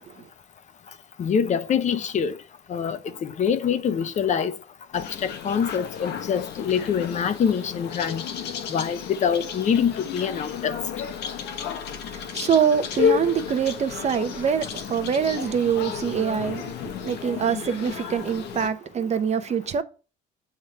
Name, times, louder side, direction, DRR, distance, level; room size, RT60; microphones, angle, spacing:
voice 1, 1.2-2.4 2.7-4.5 4.9-8.2 8.7-10.8, left 7 dB, 45° left, 0.7 m, -25 dB
sound 1, 4.9-18.7, left 7 dB, 80° left, 1.3 m, -32 dB
voice 2, 12.1-19.8, right 7 dB, 40° right, 0.9 m, -25 dB
7.8 x 3.7 x 5.5 m
cardioid pair, 110°, 17 cm